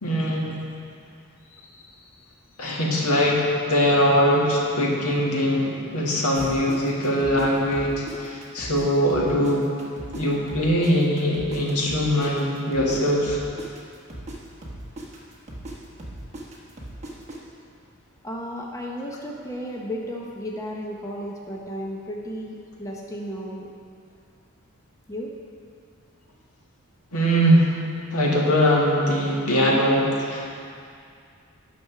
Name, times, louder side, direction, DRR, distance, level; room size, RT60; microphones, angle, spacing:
voice 1, 0.0-0.6 2.6-9.7 10.1-13.4 27.1-27.7 28.1-30.5, equal, 80° left, -2 dB, 1.6 m, -21 dB
sound 1, 6.3-8.8 9.1-13.0 13.2-17.4, right 1 dB, 30° right, 1.2 m, -38 dB
voice 2, 18.2-23.7 25.1-25.3, equal, 15° left, -1 dB, 0.7 m, -34 dB
9.7 x 6.0 x 5.7 m, 2.3 s
head